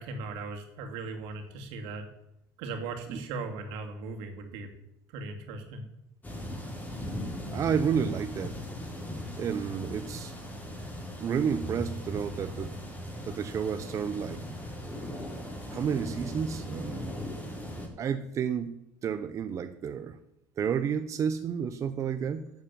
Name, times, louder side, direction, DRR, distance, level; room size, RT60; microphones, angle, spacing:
voice 1, 0.0-2.0 2.6-4.7 5.1-5.9, right 3 dB, 80° right, 4 dB, 2.3 m, -38 dB
sound 1, 6.2-17.9, equal, 20° left, 3.9 m, -38 dB
voice 2, 7.5-8.6 9.4-10.3 11.2-12.7 13.3-14.5 15.7-17.1 18.0-18.8 19.0-20.2 20.6-22.5, right 7 dB, 40° right, 8 dB, 0.8 m, -31 dB
11.0 x 7.3 x 7.4 m, 0.84 s
supercardioid pair, 105°, 8 cm